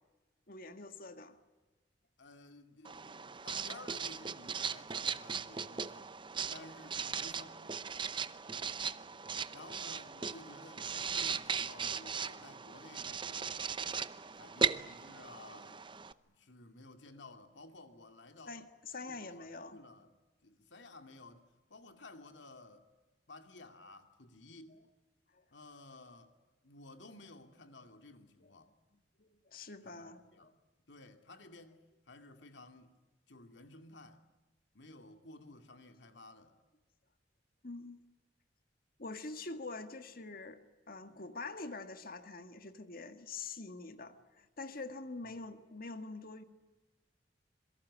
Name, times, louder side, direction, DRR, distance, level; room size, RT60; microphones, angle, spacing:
voice 1, 0.5-1.4 18.5-19.8 25.3-25.4 29.2-30.5 37.6-38.0 39.0-40.6 40.9-46.4, left 3 dB, 55° left, 1.8 m, -45 dB
voice 2, 2.2-6.1 6.5-8.1 8.4-8.8 9.5-13.6 14.4-15.9 16.2-18.5 18.9-20.1 20.4-22.8 23.3-24.8 25.5-26.3 26.6-28.7 29.8-30.6 30.9-33.0 33.3-34.2 34.7-36.5 45.2-45.4, left 2 dB, 90° left, 2.5 m, -55 dB
Writing, 2.8-16.1, right 6 dB, 25° right, 0.8 m, -38 dB
27.0 x 22.5 x 8.6 m
head